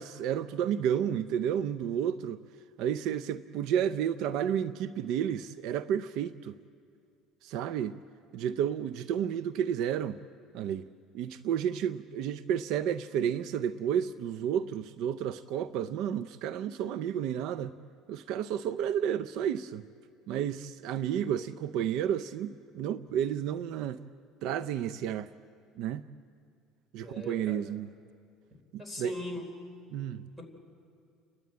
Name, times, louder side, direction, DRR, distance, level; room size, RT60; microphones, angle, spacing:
voice 1, 0.0-2.4 2.8-6.5 7.4-8.0 8.3-10.2 10.5-10.9 11.1-17.7 18.1-19.8 20.3-24.0 24.4-25.3 25.8-26.0 26.9-27.9 28.7-29.1 29.9-30.2, right 9 dB, 70° right, 0.5 m, -31 dB
voice 2, 27.0-27.6 28.8-29.5 30.4-30.5, left 1 dB, ahead, 3.8 m, -40 dB
30.0 x 12.5 x 8.7 m
cardioid pair, 125°, 0 cm